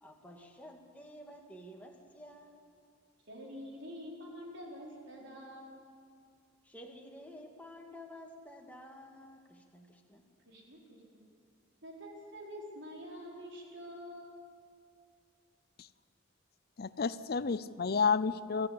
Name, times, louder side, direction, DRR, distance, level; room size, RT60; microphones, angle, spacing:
voice 1, 0.0-2.6 6.6-10.2, equal, 5° left, 1 dB, 2.1 m, -51 dB
voice 2, 3.3-5.8 10.4-10.8 11.1-11.2 11.8-14.4, equal, 60° right, -1 dB, 4.7 m, -46 dB
voice 3, 16.8-18.7, left 5 dB, 50° left, 16 dB, 0.5 m, -30 dB
25.0 x 14.0 x 8.7 m, 2.2 s
head